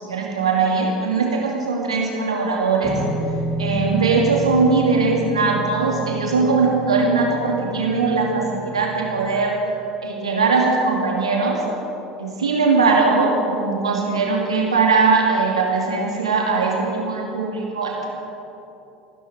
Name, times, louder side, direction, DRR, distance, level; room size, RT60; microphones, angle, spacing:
voice 1, 0.0-3.0 3.6-9.6 10.0-11.6 12.2-18.1, right 4 dB, 80° right, -2 dB, 2.4 m, -20 dB
sound 1, 2.8-9.4, right 2 dB, 35° left, 2.7 m, -30 dB
26.5 x 12.5 x 3.6 m, 2.8 s
figure-of-eight pair, 70°, 3 cm